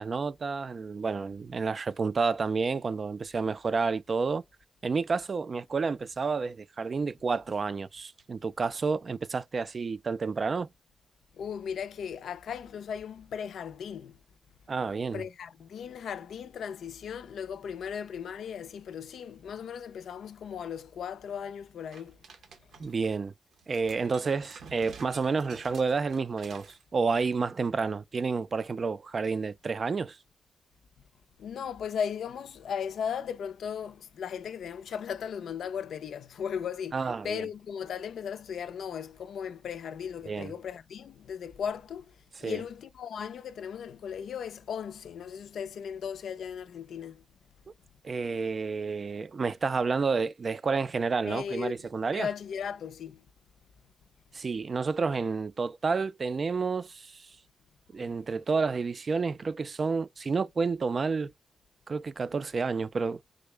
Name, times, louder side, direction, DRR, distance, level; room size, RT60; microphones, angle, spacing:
voice 1, 0.0-4.4 4.8-10.7 14.7-15.2 22.8-23.3 23.7-26.7 26.9-30.2 36.9-37.5 40.3-40.5 42.4-42.6 48.0-52.3 54.3-57.3 57.9-61.3 61.9-63.3, right 4 dB, 45° right, 0.3 m, -30 dB
voice 2, 11.4-14.2 15.1-22.2 31.4-47.2 51.2-51.8 52.1-53.3, left 7 dB, 80° left, 0.4 m, -37 dB
sound 1, 21.9-23.1 23.5-26.8, right 5 dB, 85° right, 0.7 m, -51 dB
3.7 x 2.0 x 3.2 m
cardioid pair, 100°, 0 cm